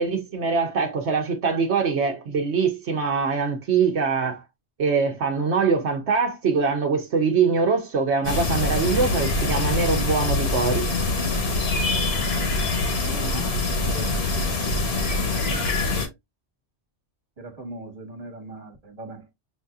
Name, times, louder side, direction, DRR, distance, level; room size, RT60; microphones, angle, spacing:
voice 1, 0.0-4.4 4.8-10.9, right 5 dB, 75° right, 1.1 m, -23 dB
sound 1, 8.2-16.1, left 3 dB, 65° left, 1.3 m, -24 dB
voice 2, 12.7-15.1 15.4-16.1 17.4-19.3, right 3 dB, 35° right, 1.4 m, -40 dB
6.0 x 2.7 x 2.3 m
omnidirectional pair, 1.2 m